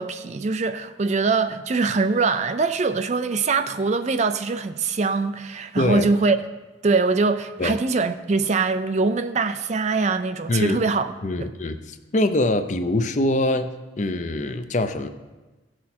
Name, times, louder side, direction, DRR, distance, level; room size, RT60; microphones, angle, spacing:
voice 1, 0.0-6.4 6.8-11.1 11.4-11.5, right 4 dB, 35° right, 0.4 m, -23 dB
voice 2, 5.8-6.1 7.6-7.8 10.5-10.8 11.2-15.1, left 1 dB, 40° left, 0.6 m, -24 dB
16.0 x 6.2 x 4.3 m
head